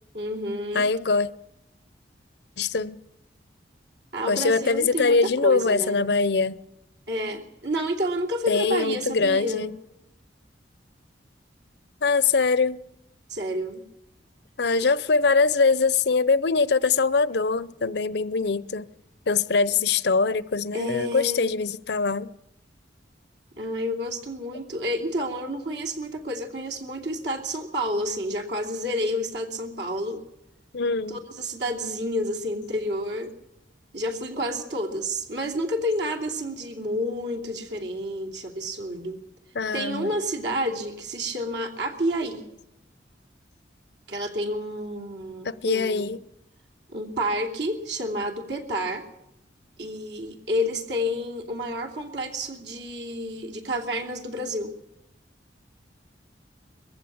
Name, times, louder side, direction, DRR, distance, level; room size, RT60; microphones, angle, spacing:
voice 1, 0.1-0.9 4.1-6.0 7.1-9.7 13.3-13.8 20.7-21.5 23.6-30.2 31.1-33.3 33.9-39.2 39.7-42.5 44.1-46.1 46.9-49.0 49.8-54.7, equal, 65° right, 2.9 m, -30 dB
voice 2, 0.7-1.3 2.6-3.0 4.3-6.6 8.5-9.7 12.0-12.8 14.6-18.9 19.3-22.3 30.7-31.2 39.5-40.1 45.4-46.2, left 4 dB, 60° left, 0.7 m, -23 dB
22.0 x 15.0 x 8.7 m
head